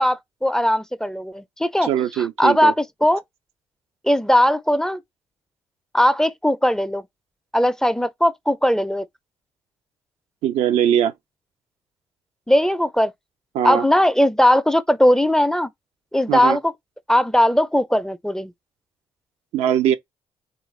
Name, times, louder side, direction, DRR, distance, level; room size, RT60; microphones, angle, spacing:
voice 1, 0.0-1.9 2.2-3.2 4.0-5.0 5.9-7.0 7.5-9.1 12.5-13.1 13.6-15.7 16.1-16.7 17.1-18.5, left 1 dB, 5° left, 0.4 m, -19 dB
voice 2, 1.8-2.7 10.4-11.1 13.5-13.8 16.3-16.6 19.5-20.0, right 10 dB, 80° right, 0.4 m, -20 dB
3.3 x 2.4 x 3.1 m
supercardioid pair, 55°, 11 cm